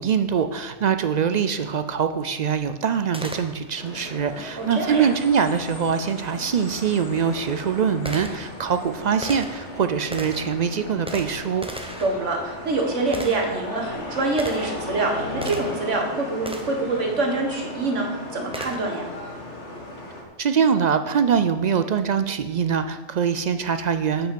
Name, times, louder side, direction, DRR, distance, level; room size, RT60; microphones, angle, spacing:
voice 1, 0.0-11.7 20.4-24.3, right 7 dB, 60° right, 10 dB, 0.4 m, -23 dB
Gunshot gunfire, 3.1-3.9 6.3-6.4 7.1-16.0 16.5-16.9 18.5-19.1, right 1 dB, 5° right, 0.8 m, -38 dB
sound 1, 3.7-20.2, left 1 dB, 70° left, 1.9 m, -36 dB
voice 2, 4.6-5.1 12.0-18.1 18.3-19.0, right 2 dB, 80° right, 1 dB, 1.9 m, -25 dB
8.6 x 6.2 x 6.8 m, 1.2 s
omnidirectional pair, 1.2 m